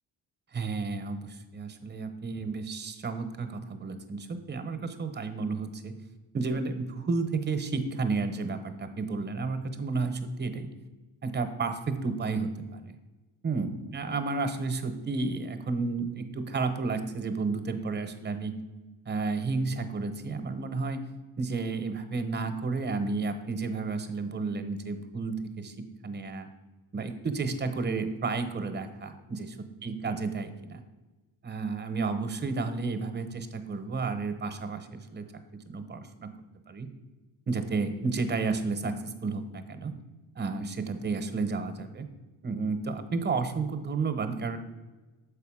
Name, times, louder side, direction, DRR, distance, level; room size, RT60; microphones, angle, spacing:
voice 1, 0.5-5.9 6.3-10.7 11.2-12.9 13.4-18.6 19.1-21.0 21.4-26.5 26.9-30.8 31.4-35.3 35.7-36.3 36.7-36.9 37.5-39.9 40.4-42.1 42.4-44.6, right 4 dB, 25° right, 8 dB, 0.9 m, -32 dB
6.7 x 5.0 x 4.9 m, 1.2 s
cardioid pair, 90°, 39 cm